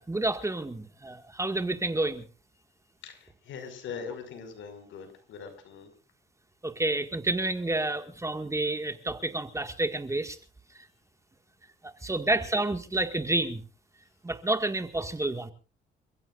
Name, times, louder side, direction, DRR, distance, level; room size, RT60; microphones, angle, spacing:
voice 1, 0.0-2.2 6.6-10.4 11.8-13.6 14.2-15.5, right 2 dB, 15° right, 7 dB, 1.9 m, -29 dB
voice 2, 3.0-5.9 12.2-12.3, left 6 dB, 75° left, 8 dB, 5.6 m, -42 dB
29.5 x 15.5 x 2.5 m, 0.34 s
cardioid pair, 90°, 20 cm